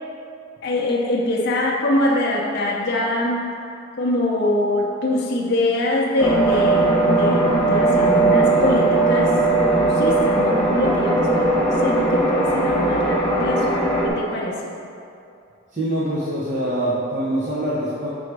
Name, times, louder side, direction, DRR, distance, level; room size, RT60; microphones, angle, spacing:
voice 1, 0.6-3.5 4.0-9.3 9.8-13.8 14.0-14.6, left 1 dB, 55° left, -3 dB, 0.6 m, -23 dB
sound 1, 6.2-14.1, right 2 dB, 5° left, 0.8 m, -18 dB
voice 2, 15.7-18.1, right 1 dB, 40° right, -9 dB, 0.8 m, -24 dB
6.2 x 3.8 x 4.6 m, 2.6 s
head